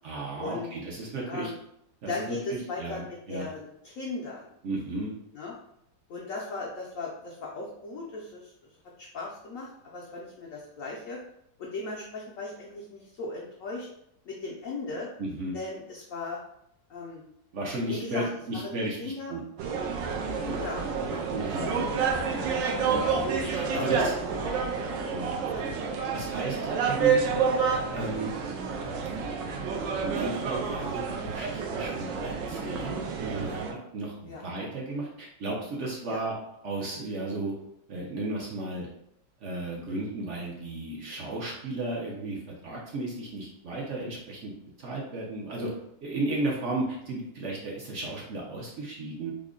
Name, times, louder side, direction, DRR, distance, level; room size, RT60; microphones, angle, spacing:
voice 1, 0.0-1.5 2.0-3.0 3.3-3.5 4.6-5.1 15.2-15.6 17.5-19.4 21.3-21.9 22.9-24.1 25.1-25.8 26.1-27.3 27.9-28.3 30.0-36.3 36.6-37.5 37.9-38.9 39.4-44.5 44.8-45.7 46.0-49.3, right 2 dB, 65° right, -3 dB, 0.7 m, -34 dB
voice 2, 2.1-4.5 5.3-5.5 6.1-8.5 9.0-11.2 11.6-13.9 14.3-15.1 15.5-16.4 16.9-17.2 17.9-18.3 18.5-19.3 20.4-22.6 23.7-24.0 24.5-25.3 34.3-34.4 36.0-36.2, left 3 dB, 70° left, -3 dB, 0.8 m, -37 dB
sound 1, 19.6-33.7, right 5 dB, 90° right, 1.3 m, -29 dB
3.7 x 2.1 x 3.6 m, 0.77 s
omnidirectional pair, 1.9 m